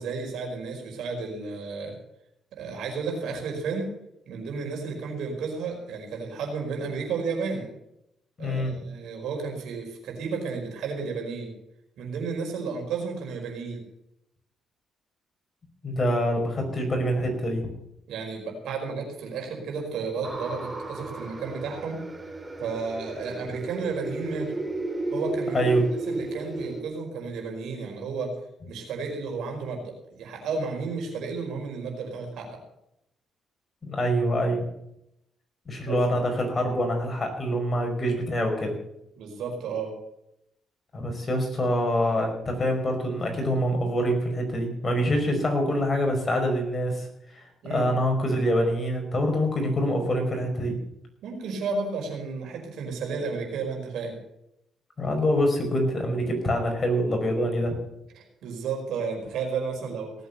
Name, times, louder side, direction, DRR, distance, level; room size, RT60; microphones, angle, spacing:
voice 1, 0.0-1.9 2.5-3.9 4.3-7.7 8.4-11.5 12.0-13.8 16.3-16.4 18.1-22.0 22.6-24.6 25.1-25.7 26.1-28.3 28.7-32.6 35.9-36.0 39.2-39.9 47.6-47.9 51.2-54.2 58.1-60.1, right 4 dB, 80° right, 2 dB, 5.0 m, -32 dB
voice 2, 8.4-8.7 15.8-17.7 25.5-25.9 33.8-34.6 35.7-38.8 40.9-47.1 47.3-50.8 55.0-57.8, equal, 30° left, 2 dB, 5.4 m, -25 dB
sound 1, 20.2-26.8, right 2 dB, 20° right, 2.4 m, -34 dB
18.5 x 8.3 x 6.9 m, 0.80 s
cardioid pair, 90°, 0 cm